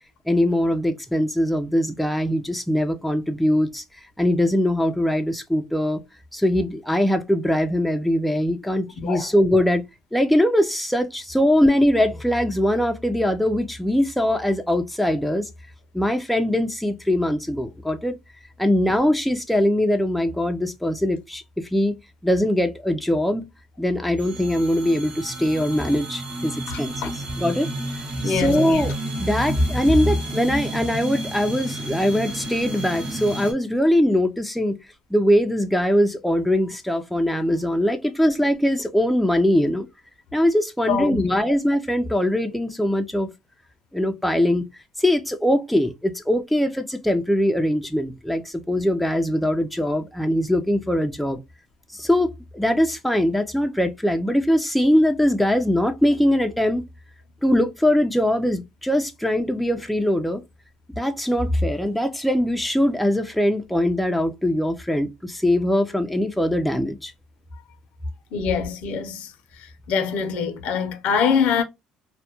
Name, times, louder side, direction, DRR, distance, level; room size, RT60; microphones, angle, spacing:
voice 1, 0.3-3.8 4.2-6.0 6.3-9.8 10.1-15.5 15.9-18.2 18.6-22.0 22.2-23.5 23.8-26.9 27.4-27.7 28.2-28.9 29.2-34.8 35.1-39.9 40.3-43.3 43.9-44.6 45.0-51.4 51.9-56.9 57.4-60.4 60.9-67.1, left 1 dB, ahead, 0.3 m, -21 dB
voice 2, 9.0-9.3 26.7-27.1 28.2-28.8 40.9-41.6 68.3-71.6, left 6 dB, 75° left, 0.5 m, -25 dB
sound 1, 24.2-33.5, right 1 dB, 50° right, 0.8 m, -31 dB
2.1 x 2.1 x 2.8 m
cardioid pair, 110°, 2 cm